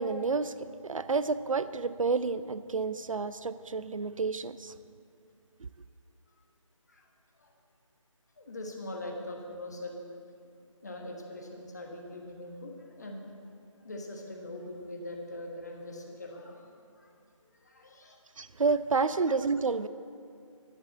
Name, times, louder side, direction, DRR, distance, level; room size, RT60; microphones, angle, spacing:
voice 1, 0.0-4.7 18.4-19.9, right 4 dB, 75° right, 14 dB, 0.5 m, -30 dB
voice 2, 8.4-10.0 10.8-13.3 13.8-17.1 17.6-18.2 19.1-19.2, left 1 dB, 30° left, 1 dB, 1.3 m, -42 dB
11.0 x 8.4 x 7.2 m, 2.4 s
figure-of-eight pair, 175°, 17 cm